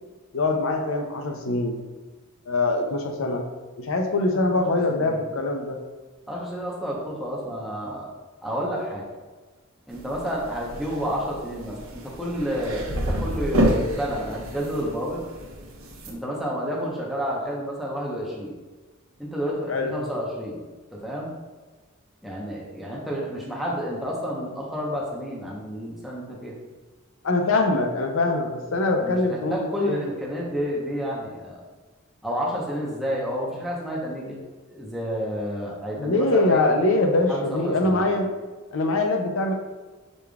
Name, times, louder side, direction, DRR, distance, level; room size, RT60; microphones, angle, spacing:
voice 1, 0.3-1.8 2.5-3.4 3.8-5.8 19.7-20.0 27.2-30.0 35.9-38.3 38.7-39.5, left 2 dB, 65° left, 3 dB, 0.5 m, -23 dB
voice 2, 4.3-5.4 6.3-8.1 8.4-9.0 9.9-11.8 12.0-15.2 16.1-18.5 19.2-20.6 20.9-21.3 22.2-26.5 29.0-31.6 32.2-36.6 37.3-38.1, equal, ahead, -5 dB, 0.8 m, -30 dB
sound 1, 9.9-16.1, equal, 70° right, 0.7 m, -29 dB
5.0 x 3.4 x 2.3 m, 1.3 s
head